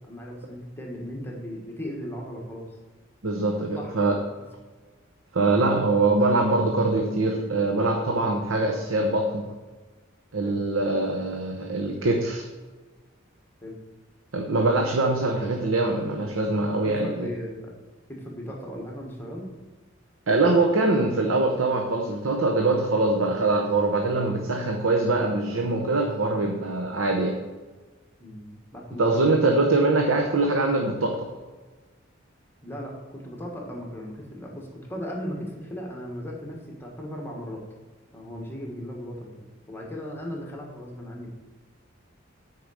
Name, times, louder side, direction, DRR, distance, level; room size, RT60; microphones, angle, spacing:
voice 1, 0.1-2.7 3.8-3.9 10.4-10.6 13.6-13.8 16.9-17.8 18.1-19.5 26.5-26.7 28.2-29.5 30.0-30.1 32.6-37.6 38.1-39.3 39.7-41.3, equal, 10° left, -1 dB, 1.5 m, -37 dB
voice 2, 3.2-4.1 5.3-9.5 10.3-12.4 14.3-17.3 20.3-27.3 29.0-31.3, right 2 dB, 85° right, 2 dB, 0.8 m, -23 dB
8.3 x 4.8 x 6.4 m, 1.3 s
head